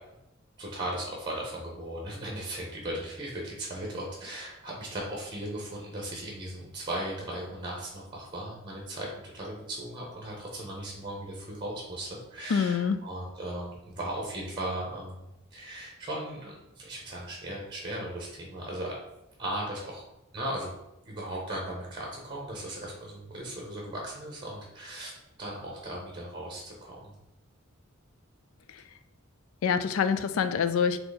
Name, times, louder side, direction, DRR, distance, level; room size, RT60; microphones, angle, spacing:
voice 1, 0.6-9.1 9.3-15.2 15.5-19.0 19.4-20.0 20.3-20.7 21.0-25.1 25.4-27.1, right 1 dB, 25° right, -2 dB, 0.8 m, -37 dB
voice 2, 12.5-13.0 28.7-28.8 29.6-31.0, left 6 dB, 80° left, 11 dB, 0.3 m, -26 dB
3.8 x 2.9 x 4.0 m, 0.91 s
head